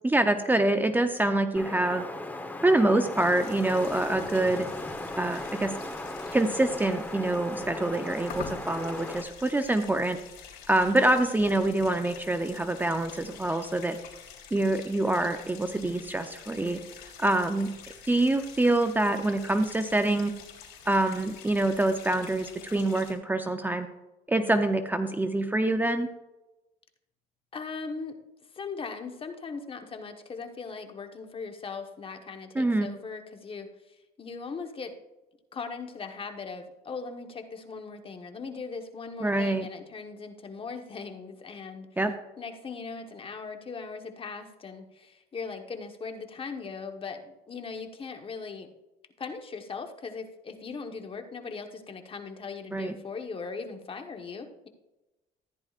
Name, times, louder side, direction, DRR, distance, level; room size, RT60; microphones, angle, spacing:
voice 1, 0.0-2.0 2.6-4.7 5.2-5.7 6.3-10.2 10.7-14.0 14.5-16.8 17.2-17.7 18.1-20.3 20.9-23.9 24.3-26.1 32.6-32.9 39.2-39.7 42.0-42.1 52.7-52.9, right 2 dB, 10° right, 7 dB, 0.6 m, -25 dB
Wind, 1.6-9.2, left 1 dB, 10° left, 1.0 m, -37 dB
sound 1, 3.2-23.1, left 7 dB, 65° left, 3.5 m, -48 dB
voice 2, 27.5-28.2 28.5-35.0 35.5-41.9 42.4-48.7 49.2-54.7, left 4 dB, 30° left, 6 dB, 1.2 m, -39 dB
14.0 x 10.5 x 2.4 m, 1.0 s
cardioid pair, 110°, 17 cm